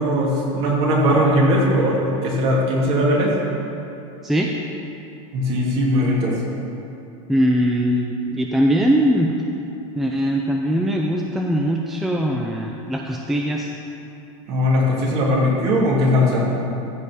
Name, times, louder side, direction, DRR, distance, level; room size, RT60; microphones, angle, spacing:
voice 1, 0.0-3.3 5.3-6.4 14.5-16.5, equal, 35° right, -4 dB, 2.6 m, -19 dB
voice 2, 7.3-9.3 10.0-13.7, equal, ahead, 0 dB, 0.4 m, -21 dB
14.5 x 5.5 x 6.3 m, 2.8 s
supercardioid pair, 160°, 17 cm